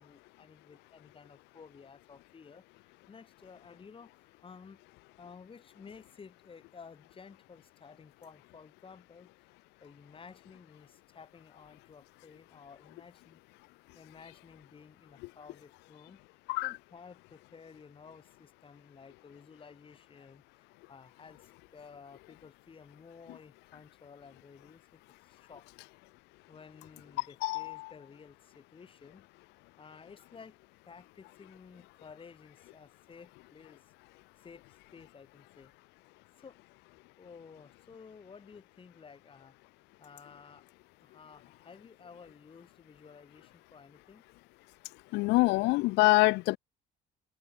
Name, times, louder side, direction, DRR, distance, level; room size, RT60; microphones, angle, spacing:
voice 1, 0.0-4.8 5.2-9.3 9.8-13.4 13.9-16.2 16.6-20.4 20.9-25.6 26.5-29.4 29.8-30.6 30.9-33.8 34.4-35.7 36.4-36.6 37.2-39.6 40.0-40.7 41.0-44.2, left 5 dB, 30° left, 6.1 m, -54 dB
voice 2, 45.1-46.6, left 23 dB, 90° left, 0.4 m, -25 dB
cardioid pair, 110°, 17 cm